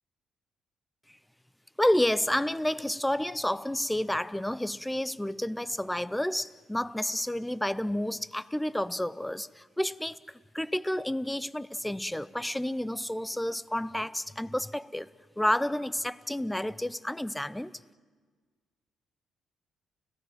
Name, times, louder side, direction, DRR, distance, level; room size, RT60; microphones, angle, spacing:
voice 1, 1.8-10.2 10.5-15.1 15.4-17.7, left 1 dB, 5° left, 0.6 m, -30 dB
29.5 x 16.5 x 7.8 m
cardioid pair, 90°, 0 cm